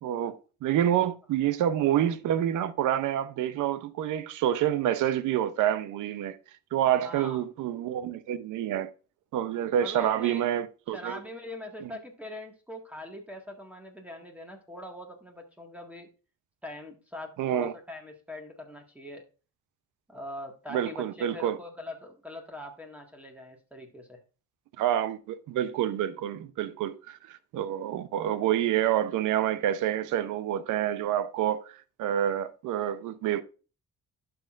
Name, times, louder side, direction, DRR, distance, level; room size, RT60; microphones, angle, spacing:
voice 1, 0.0-6.4 6.7-8.9 9.3-11.2 11.8-11.9 17.4-17.7 20.7-21.6 24.8-33.4, right 11 dB, 85° right, 0.8 m, -28 dB
voice 2, 7.0-7.4 9.8-10.4 10.9-16.1 16.6-19.2 20.1-24.2, left 1 dB, 5° right, 1.7 m, -42 dB
11.0 x 6.2 x 2.5 m
cardioid pair, 90°, 30 cm